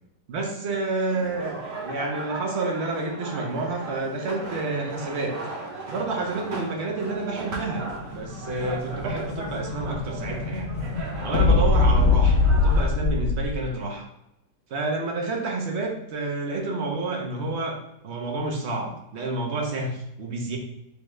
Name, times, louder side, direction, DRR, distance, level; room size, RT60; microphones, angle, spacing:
voice 1, 0.3-5.3 5.9-10.7 11.2-14.1 14.7-17.8 18.0-20.6, right 3 dB, 55° right, 1 dB, 0.8 m, -29 dB
French bar f, 1.1-12.9, right 3 dB, 75° right, 1.3 m, -37 dB
Explosion, 7.9-13.7, left 3 dB, 70° left, 0.7 m, -23 dB
3.7 x 3.1 x 3.2 m, 0.85 s
omnidirectional pair, 1.9 m